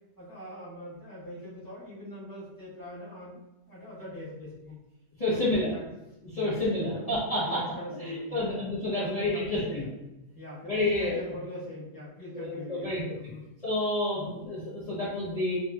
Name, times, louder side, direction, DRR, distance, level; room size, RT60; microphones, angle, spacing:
voice 1, 0.2-3.4 3.7-4.8 5.2-5.8 6.3-8.6 8.9-9.9 10.3-13.4 14.1-14.3, left 1 dB, 15° left, -8 dB, 0.9 m, -42 dB
voice 2, 5.2-5.7 6.3-7.6 8.0-9.8 10.7-11.2 12.3-13.0 13.6-15.6, left 1 dB, 60° left, -9 dB, 0.3 m, -29 dB
2.9 x 2.7 x 2.3 m, 0.96 s
omnidirectional pair, 1.7 m